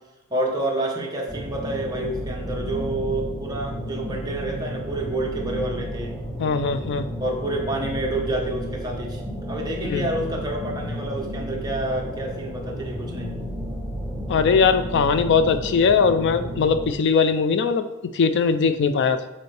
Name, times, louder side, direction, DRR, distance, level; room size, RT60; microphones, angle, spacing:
voice 1, 0.3-6.1 7.2-9.2 9.5-13.3, right 1 dB, 15° right, -1 dB, 0.9 m, -28 dB
sound 1, 1.3-16.9, equal, 5° left, 0.5 m, -32 dB
voice 2, 6.4-7.1 9.9-10.0 14.3-17.9 18.1-19.2, left 5 dB, 50° left, 10 dB, 0.3 m, -20 dB
6.9 x 4.3 x 3.2 m, 1.0 s
head